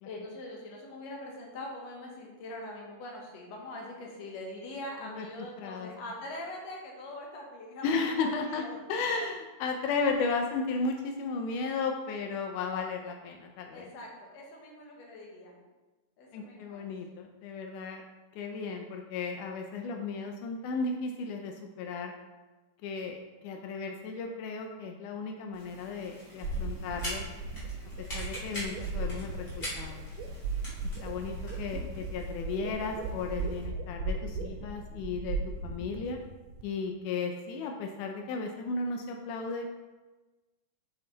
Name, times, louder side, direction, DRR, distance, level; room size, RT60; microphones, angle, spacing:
voice 1, 0.0-7.9 8.2-8.8 9.1-9.2 13.7-15.6 16.2-16.9, left 1 dB, 60° left, -1 dB, 2.0 m, -43 dB
voice 2, 5.0-5.9 7.8-13.9 16.3-18.0 18.3-22.1 22.8-27.3 28.0-30.0 31.0-36.2 36.6-39.7, left 4 dB, 90° left, 3 dB, 1.8 m, -34 dB
sound 1, 25.5-33.6, equal, 25° left, 2.2 m, -44 dB
sound 2, 26.4-36.6, right 3 dB, 85° right, 2.6 m, -37 dB
6.6 x 5.6 x 3.9 m, 1.2 s
omnidirectional pair, 4.3 m